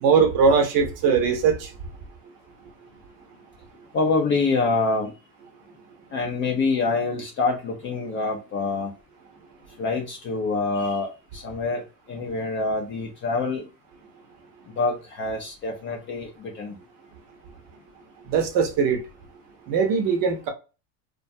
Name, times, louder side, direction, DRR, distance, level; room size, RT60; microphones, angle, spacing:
voice 1, 0.0-1.7 18.3-19.0 19.7-20.5, right 5 dB, 45° right, 0.7 m, -20 dB
voice 2, 3.9-5.1 6.1-8.9 9.8-13.7 14.7-16.8, left 3 dB, 25° left, 0.4 m, -26 dB
2.2 x 2.2 x 2.6 m
hypercardioid pair, 95°, 50 cm